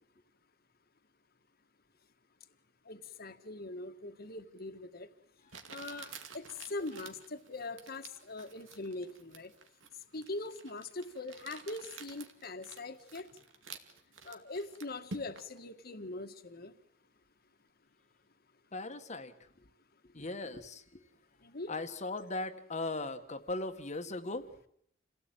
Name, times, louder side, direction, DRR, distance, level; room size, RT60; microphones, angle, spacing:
voice 1, 2.9-5.1 5.7-9.5 10.1-13.3 14.2-16.7 21.4-21.7, left 2 dB, 55° left, 9 dB, 1.7 m, -42 dB
Crumpling crinkling, 4.6-4.7 5.5-15.6, right 4 dB, 85° right, 2.5 m, -51 dB
voice 2, 18.7-19.3 20.0-21.0 21.7-24.5, left 2 dB, 35° left, 9 dB, 1.5 m, -38 dB
28.5 x 17.5 x 9.1 m, 0.68 s
head